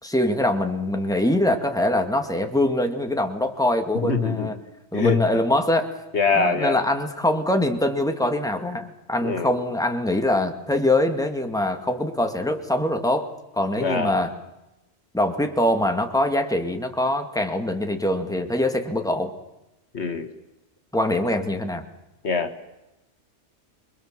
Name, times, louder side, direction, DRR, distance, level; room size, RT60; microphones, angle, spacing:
voice 1, 0.0-4.5 4.9-5.9 6.3-14.3 15.1-19.3 20.9-21.9, left 1 dB, 5° left, 5 dB, 2.1 m, -23 dB
voice 2, 4.0-4.5 4.9-5.2 6.1-6.8 9.2-9.6 13.8-14.2 19.9-20.3 22.2-22.5, left 4 dB, 70° left, 8 dB, 2.0 m, -23 dB
26.0 x 22.5 x 7.6 m, 0.94 s
omnidirectional pair, 1.2 m